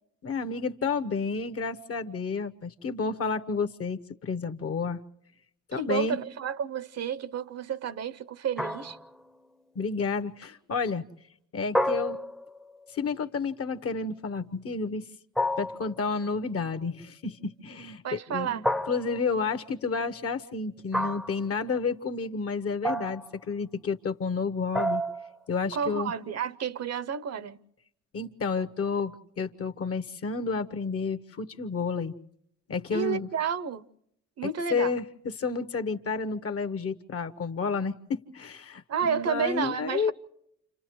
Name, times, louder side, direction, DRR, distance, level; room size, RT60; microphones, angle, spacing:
voice 1, 0.2-5.0 5.7-6.2 9.7-11.0 11.5-12.2 12.9-15.1 15.6-25.0 25.5-26.1 28.1-32.1 32.7-33.3 34.7-40.1, left 4 dB, 50° left, 1.1 m, -31 dB
voice 2, 5.7-9.0 18.0-18.6 25.7-27.6 32.9-33.8 34.4-34.9 38.9-40.1, right 7 dB, 55° right, 0.8 m, -31 dB
sound 1, 8.6-9.2 11.7-12.6 15.4-16.0 18.6-19.3 20.9-21.4 22.8-23.4 24.7-25.4, equal, ahead, 0.7 m, -29 dB
29.5 x 28.0 x 3.1 m
cardioid pair, 90°, 30 cm